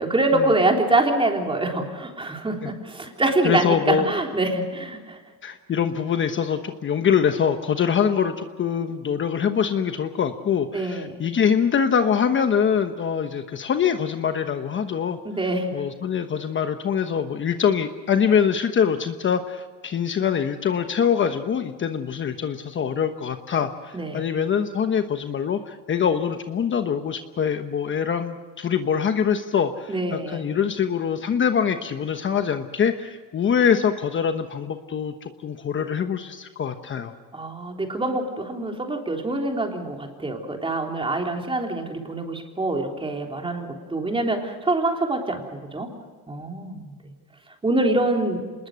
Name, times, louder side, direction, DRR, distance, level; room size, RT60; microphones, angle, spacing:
voice 1, 0.0-5.2 10.7-11.1 15.2-15.8 23.9-24.3 29.9-30.4 37.3-45.9 46.3-46.9 47.6-48.5, right 2 dB, 15° right, 2 dB, 3.6 m, -25 dB
voice 2, 3.4-4.1 5.4-15.2 15.7-37.1, left 7 dB, 35° left, 8 dB, 1.2 m, -24 dB
26.0 x 20.5 x 6.4 m, 1.5 s
cardioid pair, 120°, 33 cm